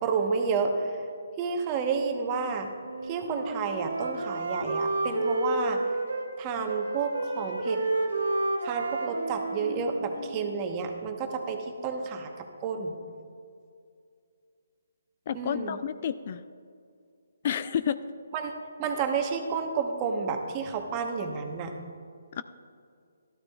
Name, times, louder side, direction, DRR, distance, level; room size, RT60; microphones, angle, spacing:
voice 1, 0.0-1.0 1.4-2.7 3.0-5.8 6.4-7.8 8.6-13.0 15.3-15.8 18.3-18.5 18.8-21.8, right 5 dB, 25° right, 4 dB, 1.0 m, -30 dB
Wind instrument woodwind instrument, 2.8-6.3 6.7-10.7, right 2 dB, 85° right, 1.5 m, -31 dB
voice 2, 15.3-16.4 17.4-18.0 22.4-22.5, left 8 dB, 40° left, 12 dB, 0.3 m, -30 dB
13.0 x 12.5 x 2.4 m, 2.3 s
figure-of-eight pair, 150°, 0 cm